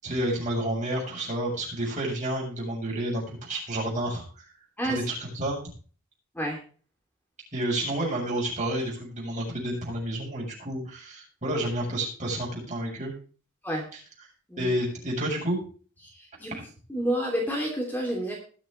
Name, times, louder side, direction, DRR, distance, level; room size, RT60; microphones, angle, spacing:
voice 1, 0.0-4.4 4.9-5.6 7.5-13.1 14.6-15.6 16.5-16.6, right 1 dB, 35° right, -2 dB, 7.5 m, -30 dB
voice 2, 16.0-16.5 16.9-18.4, right 1 dB, 10° left, 0 dB, 3.0 m, -29 dB
20.5 x 7.6 x 3.3 m, 0.40 s
head